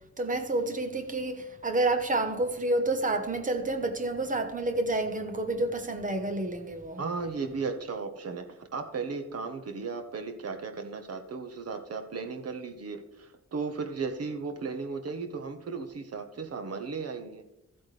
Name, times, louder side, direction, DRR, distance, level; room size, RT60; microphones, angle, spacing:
voice 1, 0.2-7.0, right 2 dB, 25° right, 1.1 m, -29 dB
voice 2, 7.0-17.4, right 4 dB, 55° right, 1.2 m, -35 dB
14.0 x 8.5 x 3.4 m
wide cardioid pair, 170°, 29 cm